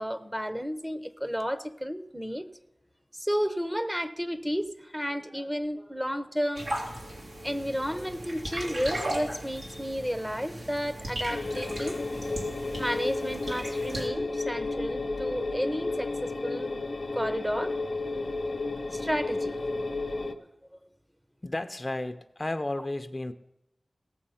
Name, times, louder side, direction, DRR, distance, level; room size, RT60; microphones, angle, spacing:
voice 1, 0.0-2.5 3.1-6.7 7.4-12.0 12.8-16.8 17.1-17.8 18.9-19.5 20.0-20.2, equal, 5° right, 0.8 m, -32 dB
sound 1, 6.6-14.1, right 1 dB, 90° right, 2.8 m, -37 dB
sound 2, 11.3-20.3, left 3 dB, 65° left, 0.8 m, -32 dB
voice 2, 21.4-23.3, left 2 dB, 35° left, 0.6 m, -33 dB
17.0 x 7.3 x 5.6 m
wide cardioid pair, 60°, 0 cm